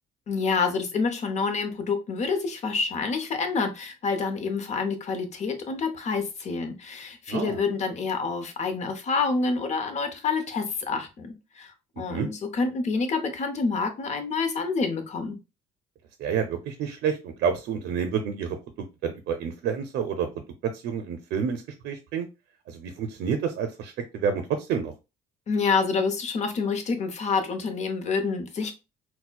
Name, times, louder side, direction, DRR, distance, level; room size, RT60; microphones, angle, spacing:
voice 1, 0.3-15.4 25.5-28.7, left 4 dB, 40° left, 8 dB, 0.7 m, -27 dB
voice 2, 7.3-7.6 12.1-12.3 16.2-20.3 20.7-22.3 22.7-24.9, right 7 dB, 75° right, 6 dB, 0.5 m, -29 dB
4.1 x 2.1 x 2.2 m, 0.27 s
cardioid pair, 110°, 17 cm